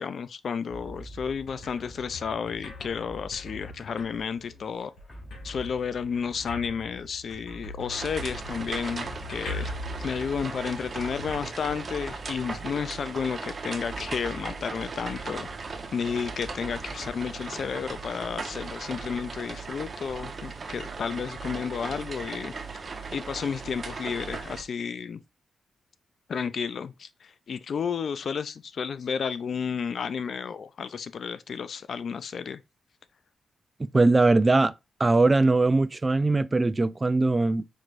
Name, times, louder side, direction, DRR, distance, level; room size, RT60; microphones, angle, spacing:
voice 1, 0.0-4.9 5.4-9.7 10.0-15.5 15.9-22.5 23.1-25.2 26.3-32.6, left 6 dB, 65° left, 0.3 m, -32 dB
sound 1, 0.7-18.3, equal, 25° left, 3.0 m, -47 dB
sound 2, 0.8-12.3, left 2 dB, 80° left, 2.1 m, -43 dB
sound 3, 7.9-24.6, right 4 dB, 50° right, 0.9 m, -38 dB
voice 2, 33.9-34.7 35.0-37.7, right 3 dB, 30° right, 0.4 m, -21 dB
5.8 x 3.1 x 2.5 m
supercardioid pair, 50°, 0 cm